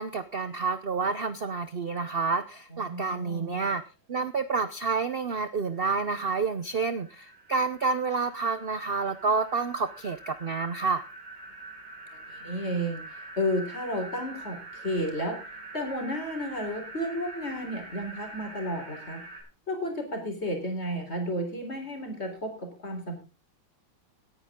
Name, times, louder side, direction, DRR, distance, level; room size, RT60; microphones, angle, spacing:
voice 1, 0.0-3.8 4.1-11.0, right 4 dB, 60° right, 11 dB, 0.6 m, -29 dB
voice 2, 2.7-3.6 12.3-15.4 15.7-19.2 19.7-23.2, equal, 30° left, 4 dB, 4.2 m, -32 dB
sound 1, 5.2-5.3 5.6-19.4, right 2 dB, 45° right, 5.9 m, -45 dB
18.5 x 9.8 x 3.7 m, 0.30 s
omnidirectional pair, 2.1 m